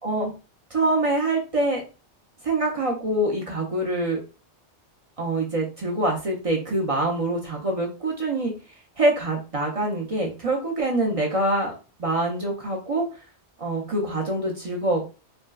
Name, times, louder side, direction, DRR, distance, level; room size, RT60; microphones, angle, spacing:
voice 1, 0.0-0.3 0.7-1.8 2.4-4.2 5.2-8.5 9.0-11.7 12.0-13.0 13.6-15.2, right 2 dB, 40° right, -1 dB, 0.5 m, -25 dB
3.4 x 2.1 x 2.2 m, 0.32 s
omnidirectional pair, 1.2 m